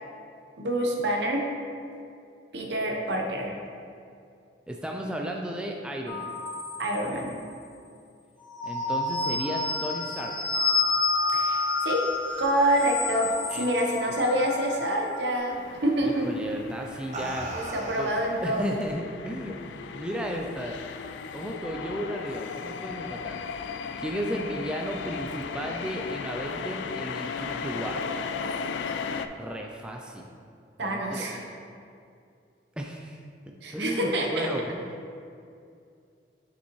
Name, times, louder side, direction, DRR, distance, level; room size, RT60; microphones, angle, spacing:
voice 1, 0.6-1.4 2.5-3.6 6.8-7.4 11.3-12.0 12.4-16.3 17.5-18.7 24.4-24.5 30.8-31.4 33.6-34.5, right 1 dB, 70° right, 1 dB, 0.8 m, -27 dB
voice 2, 4.7-6.3 8.6-10.3 13.5-13.7 14.1-14.2 16.0-17.5 18.0-18.1 18.4-20.8 21.3-23.4 24.0-28.1 29.4-30.2 30.8-31.3 32.8-33.2 33.7-34.8, equal, 5° right, 0 dB, 0.3 m, -34 dB
sound 1, 6.1-7.5 8.4-15.1, left 3 dB, 25° left, 1.0 m, -29 dB
sound 2, 11.0-13.9 14.3-14.7 15.9-16.2 16.8-18.9, right 2 dB, 40° right, 0.6 m, -40 dB
sound 3, 15.5-29.3, left 5 dB, 80° left, 0.3 m, -36 dB
6.7 x 5.1 x 3.0 m, 2.4 s
head